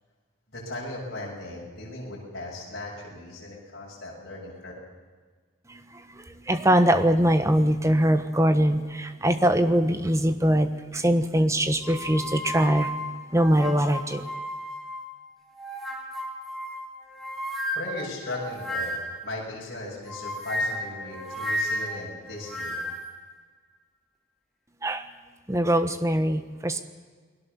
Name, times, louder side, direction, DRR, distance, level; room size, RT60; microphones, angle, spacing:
voice 1, 0.5-4.7 17.7-22.8, left 2 dB, 50° left, -5 dB, 7.7 m, -37 dB
voice 2, 5.7-12.9 13.3-14.3 24.8-25.1 25.5-26.8, equal, 15° right, 9 dB, 1.2 m, -22 dB
sound 1, 11.8-15.1 15.6-19.3 20.1-23.1, equal, ahead, 3.4 m, -33 dB
29.0 x 20.5 x 7.0 m, 1.5 s
head